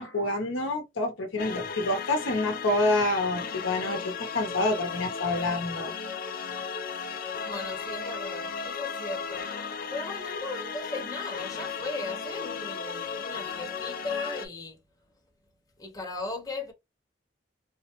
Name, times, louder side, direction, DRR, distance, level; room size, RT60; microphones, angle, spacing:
voice 1, 0.0-5.9, left 2 dB, 85° left, 0.7 m, -28 dB
sound 1, 1.4-14.5, left 6 dB, 45° left, 0.4 m, -35 dB
voice 2, 7.4-9.4 9.9-14.8 15.8-16.7, left 3 dB, 20° left, 0.8 m, -37 dB
3.3 x 2.0 x 2.9 m
head